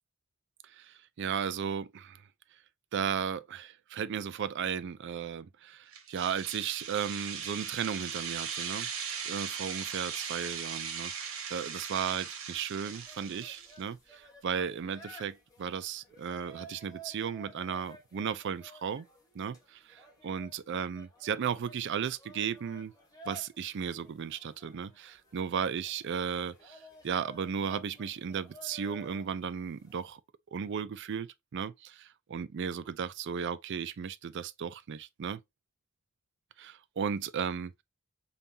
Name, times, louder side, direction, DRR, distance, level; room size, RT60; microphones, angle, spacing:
voice 1, 0.8-2.2 2.9-8.9 9.2-19.1 19.3-22.9 23.3-26.8 27.0-30.2 30.5-35.4 36.6-37.8, right 7 dB, 55° right, 0.4 m, -35 dB
sound 1, 5.9-13.8, right 7 dB, 80° right, 1.0 m, -39 dB
sound 2, 12.8-30.1, right 1 dB, 15° left, 1.2 m, -54 dB
5.3 x 2.4 x 2.7 m
head